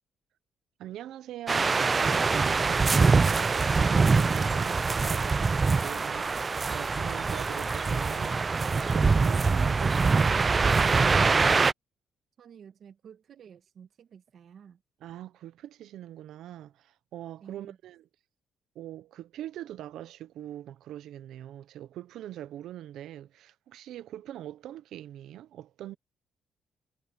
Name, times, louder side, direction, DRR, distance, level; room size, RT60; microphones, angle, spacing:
voice 1, 0.8-11.3 15.0-18.1 18.7-26.0, right 12 dB, 80° right, 0.6 m, -43 dB
sound 1, 1.5-11.7, right 4 dB, 30° right, 0.3 m, -24 dB
voice 2, 12.4-14.8 17.4-17.8, right 8 dB, 60° right, 1.5 m, -51 dB
cardioid pair, 90°, 0 cm